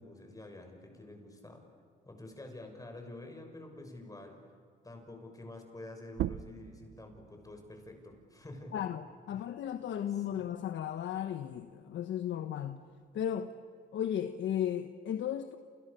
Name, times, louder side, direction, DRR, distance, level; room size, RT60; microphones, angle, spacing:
voice 1, 0.0-1.6 2.0-4.4 4.8-8.8 9.3-9.5 10.1-10.4, left 2 dB, 15° left, 6.6 m, -48 dB
sound 1, 6.1-11.3 11.7-13.5, right 12 dB, 70° right, 0.6 m, -43 dB
voice 2, 8.7-12.8 13.1-13.6 13.9-15.6, left 10 dB, 70° left, 1.2 m, -35 dB
29.5 x 29.0 x 6.9 m
cardioid pair, 90°, 20 cm